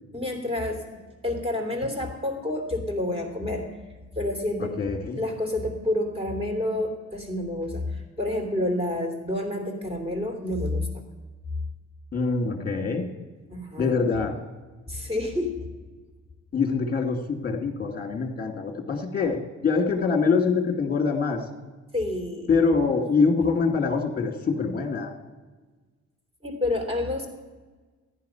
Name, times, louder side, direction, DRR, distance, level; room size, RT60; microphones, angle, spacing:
voice 1, 0.1-3.7 4.1-4.8 5.1-11.0 13.5-14.0 14.9-15.7 21.9-22.5 26.4-27.3, left 1 dB, 20° right, 4 dB, 3.2 m, -29 dB
voice 2, 4.8-5.2 12.1-13.1 13.8-14.3 16.5-21.4 22.5-25.1, left 4 dB, 30° left, 4 dB, 2.2 m, -24 dB
14.5 x 10.5 x 5.7 m, 1.3 s
cardioid pair, 90°, 30 cm